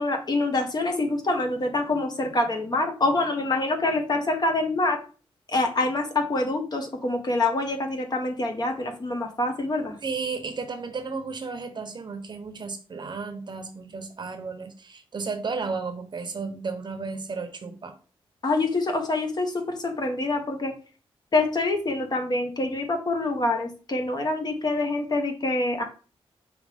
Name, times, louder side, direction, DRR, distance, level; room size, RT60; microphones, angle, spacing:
voice 1, 0.0-5.0 5.5-10.0 18.4-20.7 21.3-25.8, left 2 dB, 40° left, 4 dB, 1.0 m, -26 dB
voice 2, 10.0-18.0, right 4 dB, 45° right, 7 dB, 0.7 m, -33 dB
5.2 x 2.9 x 3.4 m, 0.37 s
cardioid pair, 90°, 10 cm